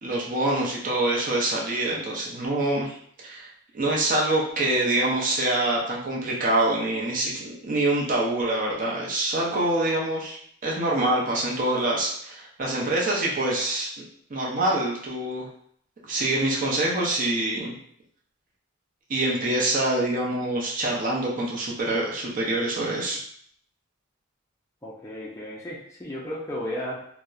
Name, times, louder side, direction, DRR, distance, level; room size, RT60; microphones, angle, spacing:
voice 1, 0.0-2.9 3.2-13.9 14.3-15.5 16.0-17.8 19.1-23.2, right 1 dB, 40° right, -3 dB, 0.6 m, -25 dB
voice 2, 24.8-27.1, left 1 dB, 15° left, -4 dB, 0.4 m, -34 dB
2.7 x 2.0 x 2.3 m, 0.62 s
head